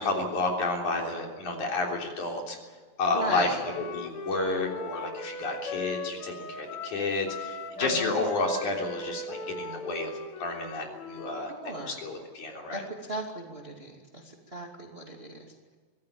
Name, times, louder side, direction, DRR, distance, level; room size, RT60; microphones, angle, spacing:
voice 1, 0.0-2.6 3.0-12.8, left 2 dB, 55° left, 1 dB, 4.8 m, -31 dB
Wind instrument woodwind instrument, 3.1-11.5, left 3 dB, 85° left, 3.8 m, -39 dB
voice 2, 3.1-3.6 7.8-8.2 11.5-12.0 12.7-15.7, equal, 20° right, 1 dB, 2.5 m, -37 dB
25.0 x 17.5 x 8.7 m, 1.5 s
omnidirectional pair, 4.2 m